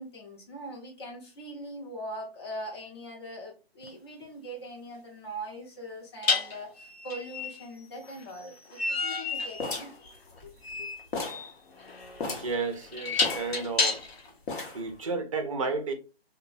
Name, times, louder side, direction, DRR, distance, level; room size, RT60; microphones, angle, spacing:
voice 1, 0.0-9.9 10.4-10.9, right 1 dB, 25° left, 0.6 m, -41 dB
sound 1, 3.8-4.0 6.2-14.3, left 4 dB, 80° left, 0.9 m, -32 dB
sound 2, 9.6-10.8 11.1-11.5 11.8-11.9 12.2-12.6 13.2-14.1 14.5-14.9, left 3 dB, 55° left, 0.9 m, -35 dB
voice 2, 12.2-14.0 14.7-15.9, right 4 dB, 35° right, 0.5 m, -32 dB
2.9 x 2.1 x 2.3 m
hypercardioid pair, 160°, 31 cm